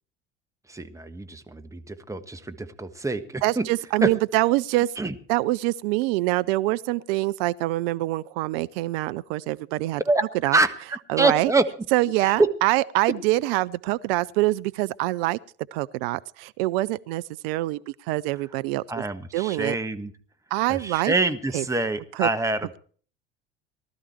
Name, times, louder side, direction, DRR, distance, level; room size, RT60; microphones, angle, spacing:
voice 1, 0.7-3.7 4.0-4.1 5.0-5.1 10.0-10.2 10.5-11.6 12.2-12.3 18.9-20.1 20.7-22.8, right 2 dB, 10° right, 1.4 m, -26 dB
voice 2, 3.4-4.9 5.3-10.0 10.4-10.6 11.1-11.5 11.9-15.4 15.7-19.0 19.3-19.7 20.5-21.1 21.5-21.6 22.2-22.3, right 18 dB, 55° right, 0.6 m, -25 dB
19.0 x 12.5 x 4.5 m
figure-of-eight pair, 60°, 35 cm